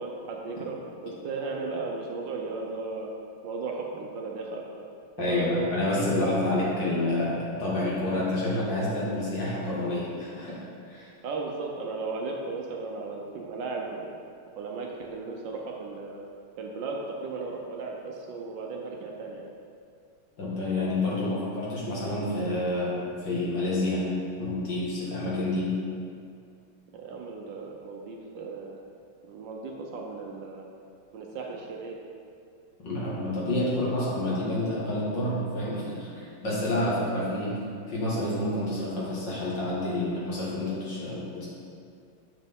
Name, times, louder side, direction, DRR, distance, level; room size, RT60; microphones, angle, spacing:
voice 1, 0.0-3.1 3.4-4.6 5.2-6.9 11.2-14.1 14.6-16.2 16.6-19.5 26.9-28.8 29.2-30.7 31.1-32.0 36.8-37.4, right 3 dB, 70° right, 0 dB, 1.3 m, -35 dB
voice 2, 5.2-11.1 20.4-24.1 24.4-25.7 32.8-41.5, left 1 dB, 55° left, -7 dB, 2.4 m, -29 dB
7.3 x 6.5 x 3.6 m, 2.4 s
omnidirectional pair, 2.4 m